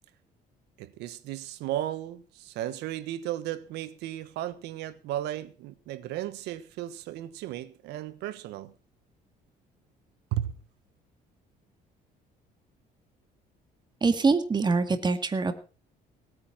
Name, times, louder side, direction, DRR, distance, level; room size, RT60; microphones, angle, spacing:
voice 1, 0.8-8.7 10.3-10.5, right 13 dB, 90° right, 1.4 m, -35 dB
voice 2, 14.0-15.5, right 4 dB, 25° right, 2.0 m, -24 dB
18.5 x 9.5 x 5.9 m
cardioid pair, 110°, 17 cm